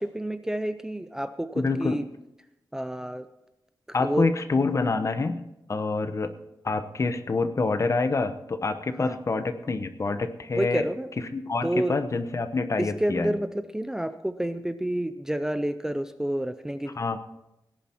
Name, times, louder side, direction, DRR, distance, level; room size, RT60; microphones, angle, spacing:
voice 1, 0.0-2.0 2.7-3.3 4.0-4.3 9.0-9.2 10.5-11.1 11.6-12.0 12.8-17.2, right 1 dB, 5° right, 10 dB, 0.4 m, -29 dB
voice 2, 1.6-2.0 3.9-5.4 5.7-6.3 6.6-10.8 11.3-13.3 17.0-17.2, left 3 dB, 40° left, 9 dB, 0.8 m, -27 dB
17.5 x 10.5 x 4.4 m, 0.88 s
wide cardioid pair, 170°, 8 cm